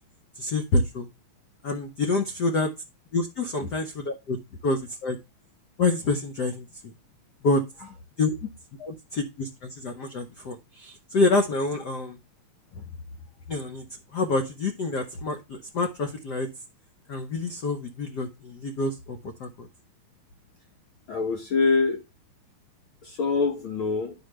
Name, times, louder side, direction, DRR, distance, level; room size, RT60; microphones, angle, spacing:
voice 1, 0.3-1.1 1.6-2.7 3.1-4.4 4.6-5.2 5.8-6.9 7.4-7.6 8.2-8.5 8.8-12.2 13.5-13.8 14.1-16.5 17.1-19.7, left 3 dB, 85° left, 0.9 m, -27 dB
voice 2, 21.1-22.0 23.0-24.1, left 4 dB, 70° left, 1.2 m, -24 dB
10.5 x 5.1 x 3.2 m
omnidirectional pair, 3.3 m